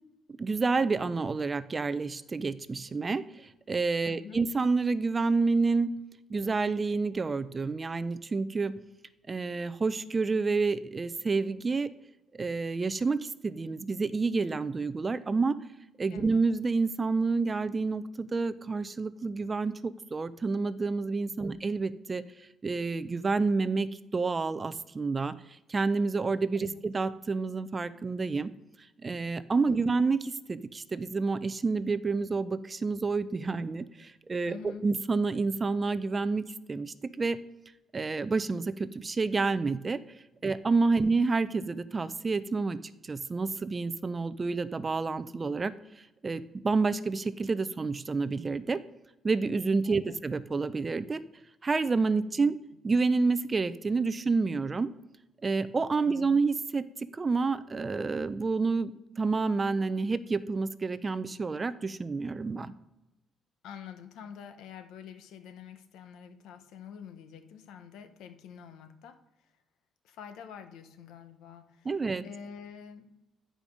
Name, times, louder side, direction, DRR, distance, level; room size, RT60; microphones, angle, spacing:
voice 1, 0.4-5.9 6.3-8.7 9.3-11.9 12.4-15.6 16.0-22.2 22.6-25.3 25.7-28.5 29.0-34.6 34.8-37.4 37.9-40.0 40.4-42.8 43.0-45.7 46.2-48.8 49.2-51.2 51.6-52.6 52.8-54.9 55.4-56.8 57.1-62.7 71.9-72.2, right 4 dB, 30° right, 14 dB, 0.5 m, -29 dB
voice 2, 4.0-4.4 16.1-16.4 26.6-26.8 29.7-30.0 34.5-34.9 41.0-41.2 49.8-50.2 52.4-52.5 56.0-56.4 63.6-69.2 70.0-72.0 72.2-73.1, left 7 dB, 90° left, 9 dB, 0.8 m, -47 dB
9.9 x 5.0 x 5.2 m, 0.99 s
cardioid pair, 90°, 0 cm